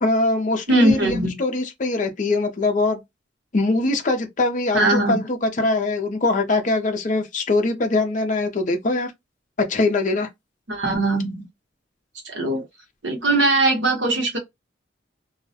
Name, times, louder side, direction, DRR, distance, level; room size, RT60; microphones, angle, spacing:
voice 1, 0.0-3.0 3.5-9.1 9.6-10.3, left 2 dB, 40° left, 0.5 m, -22 dB
voice 2, 0.7-1.4 4.7-5.2 10.7-11.5 12.2-12.7 13.0-14.4, right 2 dB, 70° right, 0.9 m, -20 dB
2.3 x 2.0 x 2.7 m
head